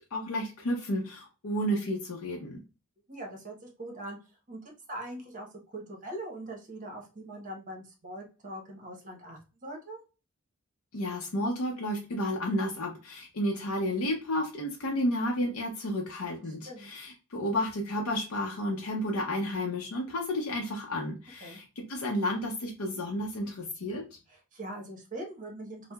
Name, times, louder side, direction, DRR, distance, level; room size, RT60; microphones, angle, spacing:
voice 1, 0.1-2.6 10.9-24.0, left 1 dB, 70° left, -1 dB, 0.6 m, -32 dB
voice 2, 3.1-4.2 4.5-4.6 4.9-10.0 16.7-16.9 21.4-21.6 24.3-25.8, right 1 dB, 40° right, 0 dB, 0.9 m, -42 dB
4.4 x 2.1 x 2.2 m, 0.32 s
head